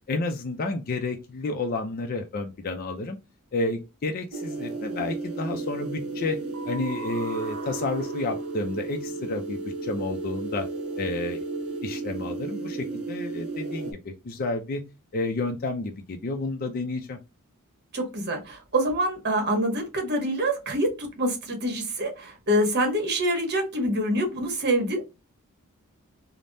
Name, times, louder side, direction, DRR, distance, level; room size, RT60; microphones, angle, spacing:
voice 1, 0.1-3.2 3.5-6.4 6.7-10.7 11.0-11.4 11.8-14.8 15.1-17.2, left 3 dB, 40° left, 0.4 m, -30 dB
sound 1, 4.3-13.9, right 3 dB, 70° right, 0.6 m, -33 dB
voice 2, 17.9-25.0, right 1 dB, 50° right, 1.0 m, -26 dB
3.3 x 2.0 x 2.6 m
head